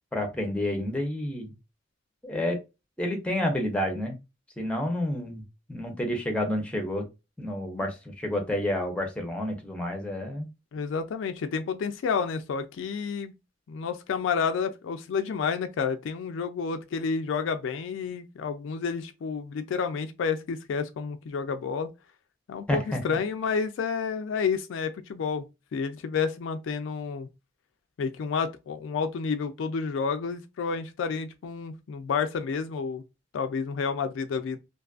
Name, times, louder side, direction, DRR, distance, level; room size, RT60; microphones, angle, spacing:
voice 1, 0.1-1.5 2.2-2.6 3.0-4.2 4.6-5.4 5.7-7.1 7.4-10.5 22.7-23.0, left 1 dB, 5° left, 0.6 m, -29 dB
voice 2, 10.7-13.3 13.7-21.9 22.5-27.3 28.0-33.0 33.3-34.6, left 5 dB, 70° left, 0.3 m, -30 dB
2.5 x 2.4 x 2.3 m
head